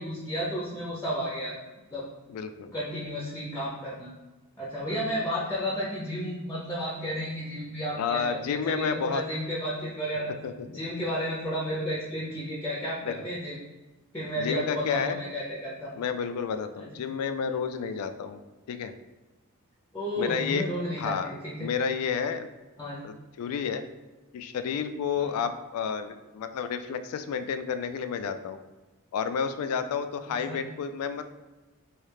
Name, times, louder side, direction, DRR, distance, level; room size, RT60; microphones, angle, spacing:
voice 1, 0.0-1.6 1.9-2.0 2.7-4.1 4.6-10.3 10.7-13.6 14.1-15.9 16.8-16.9 19.9-21.7 22.8-23.0 25.2-25.3 30.3-30.6, equal, 15° left, -6 dB, 0.5 m, -32 dB
voice 2, 2.3-2.7 4.9-5.0 8.0-9.2 10.4-10.5 13.1-13.2 14.4-15.2 16.0-18.4 18.7-18.9 20.2-20.6 21.0-21.3 21.6-22.5 23.0-23.8 24.3-28.6 29.1-31.2, left 6 dB, 75° left, 12 dB, 0.3 m, -30 dB
3.1 x 2.7 x 3.3 m, 1.2 s
head